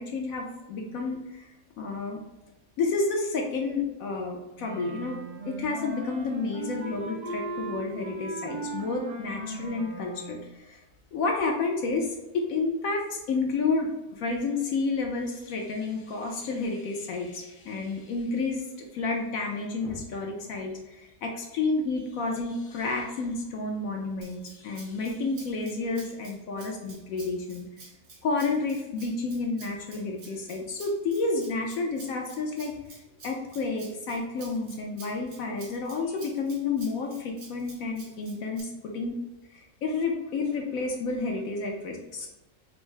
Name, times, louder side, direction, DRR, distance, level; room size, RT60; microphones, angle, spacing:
voice 1, 0.0-1.4 1.8-2.2 2.8-5.2 5.5-10.8 11.1-12.1 12.3-27.7 28.2-32.7 33.2-39.2 39.5-42.3, left 3 dB, 70° left, 1 dB, 1.0 m, -30 dB
Wind instrument woodwind instrument, 4.6-10.5, right 2 dB, 85° right, 1.3 m, -38 dB
Rattle (instrument), 24.2-38.6, right 3 dB, 50° right, 0.9 m, -50 dB
4.5 x 2.0 x 3.1 m, 1.0 s
omnidirectional pair, 1.6 m